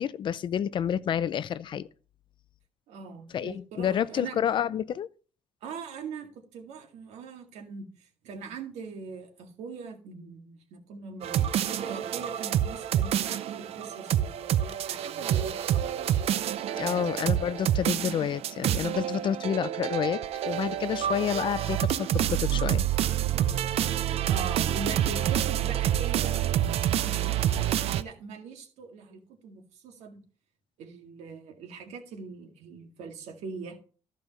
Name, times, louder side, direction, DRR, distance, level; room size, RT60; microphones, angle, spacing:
voice 1, 0.0-1.9 3.3-5.1 16.8-22.8, left 9 dB, 45° left, 0.5 m, -29 dB
voice 2, 2.9-4.4 5.6-16.1 16.8-17.1 21.0-21.1 24.3-26.6 27.0-30.2 30.8-33.8, right 5 dB, 90° right, 2.0 m, -41 dB
sound 1, 11.2-28.0, right 11 dB, 65° right, 0.6 m, -28 dB
14.0 x 5.2 x 4.1 m
cardioid pair, 135°, 11 cm